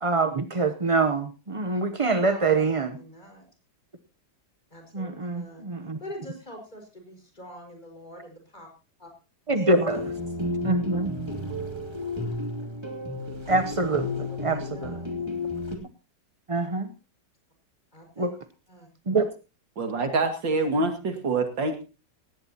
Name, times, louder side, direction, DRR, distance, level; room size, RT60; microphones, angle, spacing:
voice 1, 0.0-3.0 4.9-6.0 9.5-10.0 10.6-11.1 13.5-14.9 16.5-16.9 18.2-18.3 19.1-19.3, right 3 dB, 35° right, 8 dB, 0.5 m, -25 dB
voice 2, 2.3-3.5 4.7-5.6 6.0-8.7 9.0-9.1 9.5-9.8 14.0-15.2 17.9-18.3 18.7-18.9, equal, 25° left, 2 dB, 5.5 m, -44 dB
sound 1, 9.9-15.8, left 2 dB, 15° right, 2.6 m, -32 dB
voice 3, 19.8-21.8, right 3 dB, 80° right, 7 dB, 2.9 m, -26 dB
18.0 x 16.5 x 2.9 m, 0.31 s
omnidirectional pair, 2.0 m